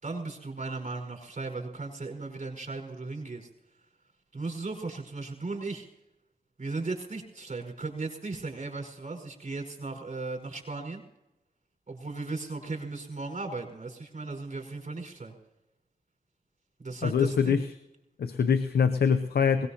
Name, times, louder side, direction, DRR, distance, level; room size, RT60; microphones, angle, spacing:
voice 1, 0.0-3.5 4.3-5.9 6.6-11.0 11.9-15.3 16.8-17.6, right 3 dB, 50° right, 2 dB, 5.0 m, -36 dB
voice 2, 17.0-17.7 18.2-19.7, left 6 dB, 90° left, 9 dB, 0.6 m, -24 dB
21.0 x 19.5 x 2.9 m, 0.94 s
cardioid pair, 45°, 16 cm